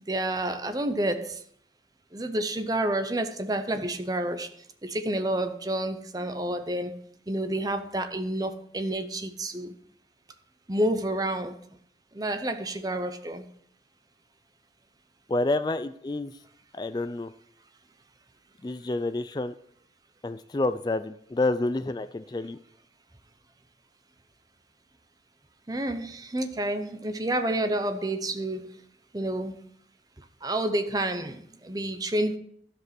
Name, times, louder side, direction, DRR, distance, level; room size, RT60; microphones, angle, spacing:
voice 1, 0.1-1.4 2.1-4.5 4.8-7.0 7.3-9.7 10.7-11.5 12.1-13.4 25.7-28.7 29.1-29.6 30.4-32.4, right 1 dB, 20° right, 0.7 m, -29 dB
voice 2, 15.3-16.3 16.7-17.3 18.6-19.5 20.2-22.6, left 2 dB, 25° left, 0.3 m, -28 dB
12.5 x 5.2 x 6.0 m
head